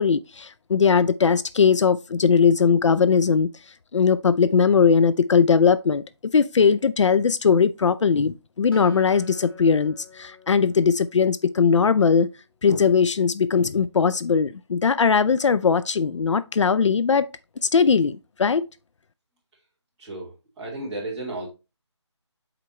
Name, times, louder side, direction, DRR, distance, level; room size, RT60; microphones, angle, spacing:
voice 1, 0.0-3.5 3.9-6.0 6.3-12.3 12.6-17.3 17.6-18.7, left 6 dB, 75° left, 0.4 m, -19 dB
Acoustic guitar, 8.7-12.2, left 5 dB, 50° left, 1.5 m, -46 dB
voice 2, 20.0-21.5, right 2 dB, 10° right, 1.8 m, -33 dB
7.7 x 4.5 x 3.1 m
figure-of-eight pair, 170°, 15 cm